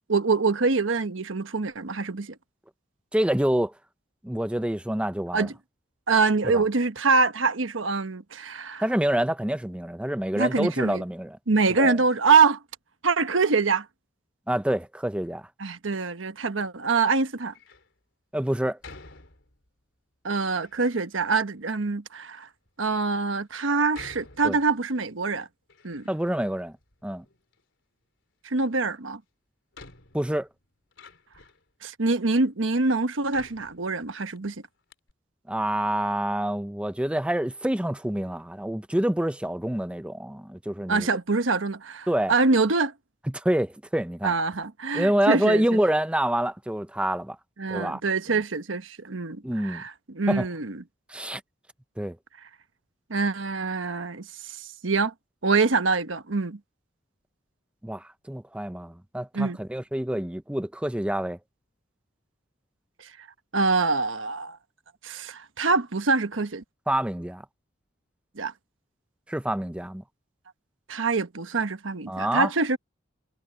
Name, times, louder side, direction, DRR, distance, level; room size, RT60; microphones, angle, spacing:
voice 1, 0.1-2.3 5.3-5.5 6.1-8.8 10.4-11.0 11.5-12.6 13.0-13.9 15.6-17.5 20.2-22.5 22.8-25.5 25.8-26.0 28.4-29.2 31.8-34.5 40.9-42.9 44.2-45.6 47.6-50.8 53.1-54.6 54.8-55.1 55.4-56.6 59.3-59.6 63.5-64.6 65.0-66.6 68.4-68.5 70.9-72.8, right 4 dB, 80° right, 1.2 m, -25 dB
voice 2, 3.1-3.7 4.2-5.5 6.5-6.6 8.8-11.4 11.8-12.0 14.5-15.5 18.3-18.8 24.4-24.6 26.1-26.7 27.0-27.2 30.1-30.5 35.5-41.1 42.1-42.3 43.3-44.3 44.9-47.4 47.7-48.0 49.4-49.8 50.3-50.5 51.1-51.4 52.0-52.2 57.8-61.4 66.9-67.4 69.3-70.0 72.1-72.5, right 1 dB, 5° right, 0.5 m, -27 dB
Door, 17.4-17.9 18.8-19.8 20.5-21.1 21.9-22.0 22.7-22.8 23.9-25.1 25.4-26.5 26.8-27.6 29.0-29.1 29.7-31.7 32.4-32.5 33.3-34.4 34.6-34.7 34.9-35.1, left 3 dB, 70° left, 4.0 m, -50 dB
head